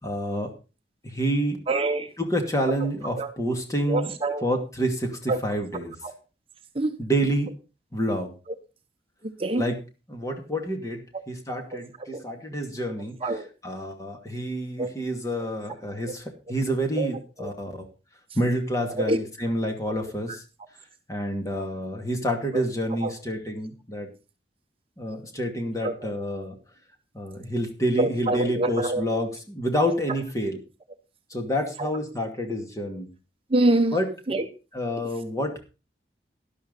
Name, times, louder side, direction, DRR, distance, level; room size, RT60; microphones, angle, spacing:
voice 1, 0.0-0.5 1.0-1.6 2.2-4.1 4.4-5.9 7.0-7.5 7.9-8.3 9.6-9.7 10.1-13.2 13.6-17.7 18.3-20.4 21.1-24.1 25.0-26.6 27.1-30.6 31.3-33.1 33.9-34.1 34.7-35.6, equal, 20° left, 2.5 m, -28 dB
voice 2, 1.7-2.1 3.2-3.3 3.9-4.4 5.3-5.4 6.0-6.1 6.7-6.9 9.4-9.6 12.1-12.2 13.2-13.5 14.8-14.9 17.0-17.1 17.4-17.5 18.9-19.2 23.0-23.1 25.8-25.9 28.0-29.2 31.8-31.9 33.5-34.0 34.3-34.5, right 2 dB, 35° right, 0.9 m, -25 dB
12.0 x 11.5 x 4.1 m
head